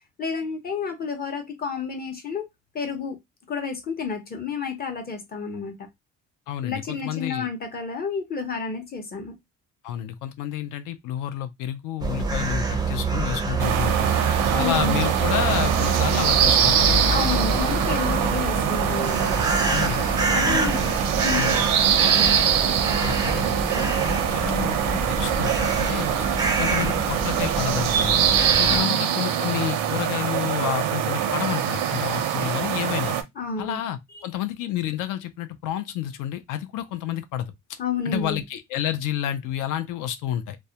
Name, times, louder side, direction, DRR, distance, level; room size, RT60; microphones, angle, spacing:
voice 1, 0.2-2.5 2.7-3.2 3.5-5.9 6.6-9.3 14.5-15.1 17.1-19.5 20.3-20.8 21.2-21.6 22.0-22.5 28.7-29.0 33.4-33.8 34.1-34.3 37.8-38.4, left 5 dB, 30° left, 0.6 m, -30 dB
voice 2, 6.5-7.5 9.8-14.1 14.6-17.2 19.7-21.0 21.4-21.5 23.0-26.3 26.6-28.2 28.6-33.2 33.6-37.8 38.1-40.6, left 11 dB, 75° left, 0.5 m, -30 dB
sound 1, 12.0-28.8, right 3 dB, 15° right, 0.4 m, -26 dB
sound 2, 13.6-33.2, right 9 dB, 90° right, 0.6 m, -23 dB
2.3 x 2.1 x 2.7 m
cardioid pair, 140°, 32 cm